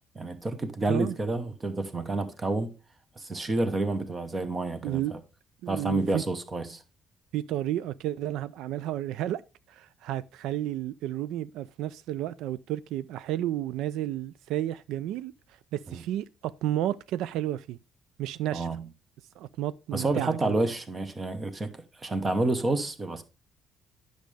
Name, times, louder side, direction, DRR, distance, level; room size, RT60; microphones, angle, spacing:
voice 1, 0.1-2.7 3.2-5.2 5.7-6.8 15.9-16.0 18.5-18.8 19.9-23.2, right 2 dB, 15° right, 0.8 m, -29 dB
voice 2, 4.8-5.1 5.6-6.2 7.3-9.4 9.7-17.8 18.2-18.7 19.4-20.6, right 13 dB, 85° right, 0.3 m, -32 dB
10.5 x 6.4 x 3.3 m
cardioid pair, 175°, 0 cm